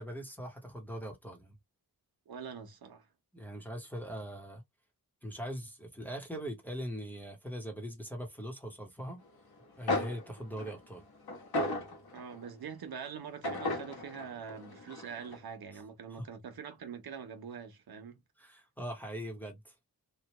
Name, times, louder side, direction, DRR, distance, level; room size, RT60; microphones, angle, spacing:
voice 1, 0.0-1.6 3.3-4.6 5.2-9.2 9.8-11.0 15.7-15.8 16.1-16.3 18.4-19.7, equal, 5° left, 1.0 m, -41 dB
voice 2, 2.3-3.1 12.1-18.2, right 7 dB, 80° right, 1.0 m, -44 dB
sound 1, 9.6-9.7 9.9-12.5 13.4-15.4, left 2 dB, 85° left, 1.3 m, -36 dB
3.2 x 2.3 x 2.9 m
wide cardioid pair, 125°, 36 cm